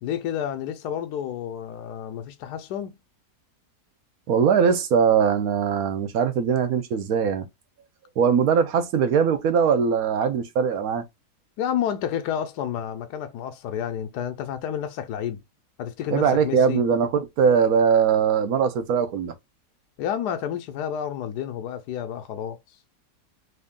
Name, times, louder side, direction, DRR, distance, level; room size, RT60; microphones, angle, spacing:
voice 1, 0.0-2.9 11.6-15.4 15.8-16.8 20.0-22.8, left 9 dB, 75° left, 1.1 m, -30 dB
voice 2, 4.3-7.5 8.2-11.0 16.1-19.3, right 6 dB, 65° right, 1.2 m, -21 dB
3.3 x 2.7 x 3.6 m
omnidirectional pair, 1.8 m